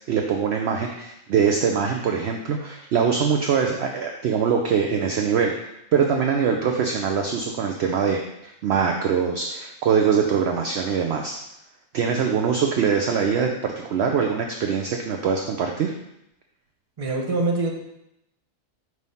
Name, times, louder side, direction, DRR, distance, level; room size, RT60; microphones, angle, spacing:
voice 1, 0.1-11.4 11.9-15.9, right 6 dB, 60° right, 2 dB, 0.7 m, -23 dB
voice 2, 17.0-17.7, right 2 dB, 30° right, 0 dB, 0.8 m, -24 dB
5.4 x 3.2 x 5.4 m, 0.83 s
omnidirectional pair, 1.4 m